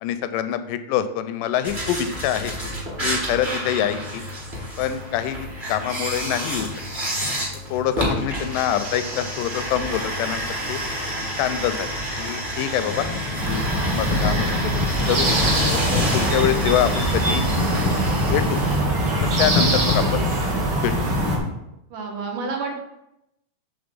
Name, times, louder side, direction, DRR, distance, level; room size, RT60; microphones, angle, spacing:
voice 1, 0.0-2.5 3.0-4.2 4.8-6.7 7.7-10.8 11.4-11.9 12.2-13.1 13.4-14.8 15.1-15.5 16.1-17.4 18.3-18.6 19.2-20.3 20.8-20.9, left 10 dB, 85° left, 11 dB, 2.1 m, -25 dB
sound 1, 1.6-18.8, equal, 25° right, 1.0 m, -29 dB
sound 2, 12.9-21.5, left 6 dB, 70° left, 1.4 m, -28 dB
sound 3, 13.3-21.4, right 2 dB, 60° right, 1.1 m, -23 dB
voice 2, 21.9-22.7, right 4 dB, 80° right, 1 dB, 2.8 m, -30 dB
8.0 x 3.6 x 5.2 m, 0.85 s
omnidirectional pair, 3.7 m